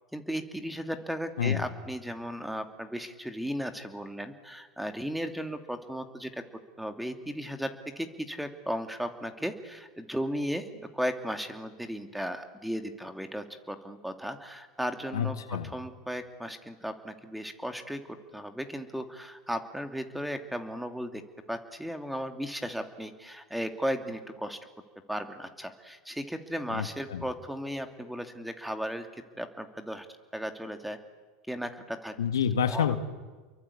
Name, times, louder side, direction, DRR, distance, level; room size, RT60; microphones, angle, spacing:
voice 1, 0.1-6.4 6.8-7.7 8.0-15.4 15.6-18.0 18.3-21.2 21.5-24.6 25.1-30.1 30.3-31.0 31.5-32.1 32.6-32.9, equal, ahead, 7 dB, 2.6 m, -35 dB
voice 2, 15.1-15.7 26.7-27.2 32.2-33.0, left 8 dB, 85° left, 9 dB, 1.8 m, -28 dB
29.5 x 23.0 x 8.5 m, 1.4 s
hypercardioid pair, 95°, 2 cm